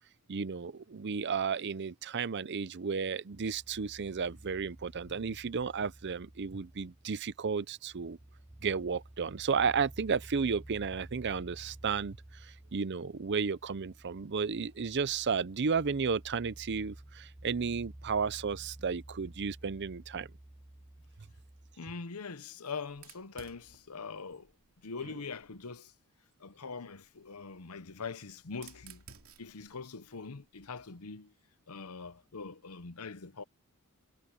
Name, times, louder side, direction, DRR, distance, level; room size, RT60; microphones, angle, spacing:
voice 1, 0.3-8.2 8.6-20.3, right 5 dB, 50° right, 0.6 m, -33 dB
sound 1, 3.3-21.8, right 1 dB, 10° right, 0.5 m, -52 dB
voice 2, 21.8-24.5 24.8-25.9 26.4-29.0 29.4-31.3 31.7-33.4, left 4 dB, 85° left, 0.9 m, -43 dB
Fire, 22.9-25.7 26.8-31.0, right 7 dB, 70° right, 2.8 m, -58 dB
head